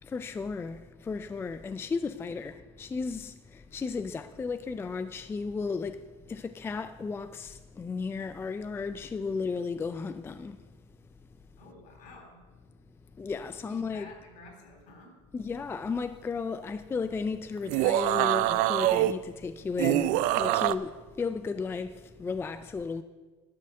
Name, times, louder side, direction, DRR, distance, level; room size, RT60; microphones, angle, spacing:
voice 1, 0.0-10.7 13.2-14.1 15.3-23.0, left 4 dB, 15° left, 0.4 m, -34 dB
voice 2, 11.6-12.4 13.7-15.1, left 3 dB, 60° left, 3.7 m, -51 dB
sound 1, 17.6-19.1 19.8-20.7, right 15 dB, 60° right, 0.5 m, -25 dB
12.5 x 6.5 x 6.5 m
supercardioid pair, 115°, 15 cm